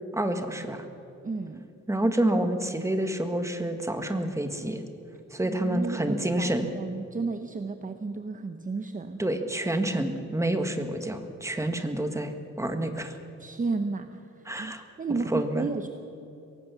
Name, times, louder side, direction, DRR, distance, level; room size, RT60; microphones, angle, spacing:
voice 1, 0.1-0.8 1.9-4.8 5.3-6.7 9.2-13.2 14.5-14.8 15.3-15.7, right 1 dB, 10° right, 6 dB, 1.5 m, -28 dB
voice 2, 1.2-1.6 5.4-9.2 13.4-14.7 15.0-15.9, right 4 dB, 25° right, 8 dB, 0.8 m, -33 dB
23.5 x 17.5 x 7.0 m, 2.8 s
wide cardioid pair, 160°, 29 cm